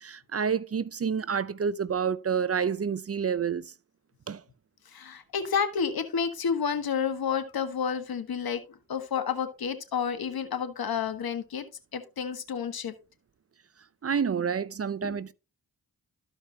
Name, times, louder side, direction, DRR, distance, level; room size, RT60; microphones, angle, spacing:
voice 1, 0.0-3.6 4.3-4.4 14.0-15.3, right 6 dB, 40° right, 0.6 m, -28 dB
voice 2, 4.8-8.6 8.9-11.6 11.9-12.9 15.0-15.2, left 7 dB, 70° left, 1.5 m, -30 dB
13.5 x 5.1 x 2.8 m
cardioid pair, 50°, 38 cm